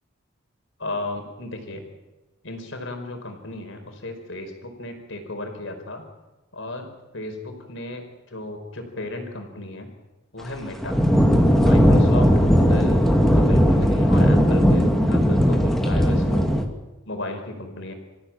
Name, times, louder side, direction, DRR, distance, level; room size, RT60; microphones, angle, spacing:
voice 1, 0.8-1.8 2.4-6.0 6.5-9.9 10.3-10.9 11.6-13.1 13.3-16.5 17.0-17.9, left 2 dB, 70° left, 4 dB, 4.9 m, -34 dB
sound 1, 10.8-16.6, equal, ahead, 2.1 m, -17 dB
26.0 x 15.5 x 8.9 m, 1.1 s
head